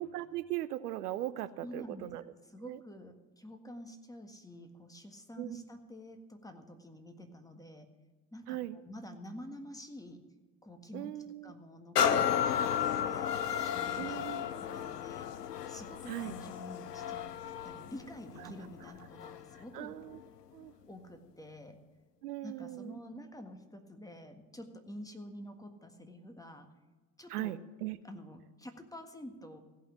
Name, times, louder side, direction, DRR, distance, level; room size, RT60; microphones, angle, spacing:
voice 1, 0.0-2.3 2.6-2.8 5.4-5.6 8.5-8.8 10.9-11.5 14.0-14.5 16.1-16.4 18.4-18.5 18.8-18.9 19.7-20.2 20.5-20.7 22.2-23.0 27.3-28.0, right 14 dB, 75° right, 15 dB, 0.6 m, -39 dB
voice 2, 1.6-7.9 8.3-10.2 10.6-11.1 11.4-13.3 13.6-15.3 15.7-17.3 17.6-20.0 20.9-21.8 22.4-26.7 27.2-27.5 28.0-29.6, left 1 dB, 5° left, 6 dB, 1.6 m, -48 dB
sound 1, 12.0-19.6 20.1-20.2, left 8 dB, 90° left, 0.5 m, -33 dB
16.0 x 5.7 x 8.2 m, 1.3 s
figure-of-eight pair, 60°, 47 cm